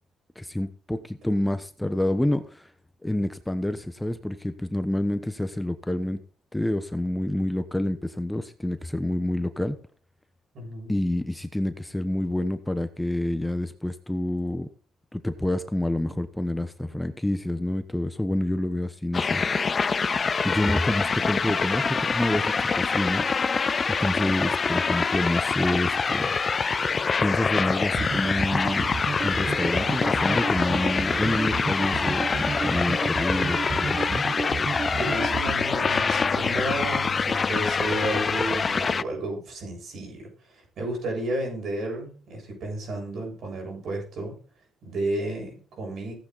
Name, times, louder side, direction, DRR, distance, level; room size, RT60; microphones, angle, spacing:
voice 1, 0.4-2.7 3.0-6.2 6.5-9.8 10.9-14.7 15.1-19.9 20.4-23.2 23.9-26.3 27.2-28.9 29.2-34.2, left 1 dB, 5° left, 9 dB, 1.0 m, -28 dB
voice 2, 10.5-10.9 34.9-44.3 44.8-46.1, right 1 dB, 65° right, 1 dB, 7.6 m, -32 dB
sound 1, 19.1-39.0, left 5 dB, 35° left, 0.5 m, -25 dB
sound 2, 27.9-35.6, right 5 dB, 45° right, 0.8 m, -32 dB
15.5 x 8.5 x 4.1 m, 0.41 s
cardioid pair, 90°, 0 cm